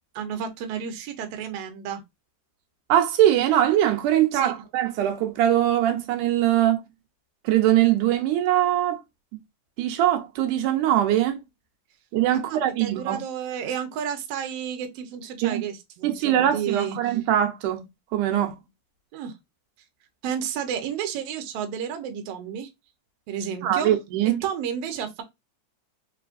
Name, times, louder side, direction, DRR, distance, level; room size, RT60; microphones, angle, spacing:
voice 1, 0.2-2.0 4.3-4.5 12.3-17.1 19.1-19.3 20.2-22.7 23.3-24.0 24.4-25.2, right 8 dB, 65° right, 1.7 m, -31 dB
voice 2, 2.9-6.8 7.4-9.0 9.8-11.4 12.1-13.2 15.4-15.6 16.0-17.8 18.1-18.5 23.6-24.4, right 12 dB, 85° right, 2.4 m, -22 dB
4.9 x 3.3 x 2.5 m
omnidirectional pair, 3.5 m